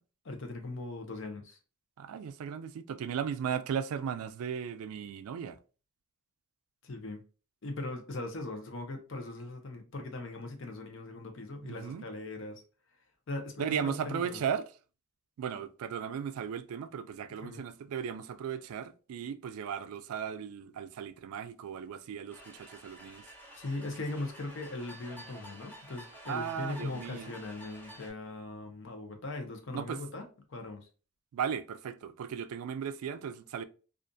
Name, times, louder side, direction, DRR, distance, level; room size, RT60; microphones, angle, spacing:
voice 1, 0.2-1.6 6.8-7.2 7.6-12.6 13.3-14.4 17.4-17.6 23.6-30.9, left 2 dB, 60° left, 0.6 m, -40 dB
voice 2, 2.0-5.6 11.6-12.0 13.6-14.7 15.4-23.2 26.3-27.3 29.7-30.0 31.3-33.6, right 7 dB, 85° right, 0.3 m, -36 dB
sound 1, 22.3-28.1, right 1 dB, 10° left, 0.6 m, -50 dB
2.5 x 2.4 x 2.2 m
head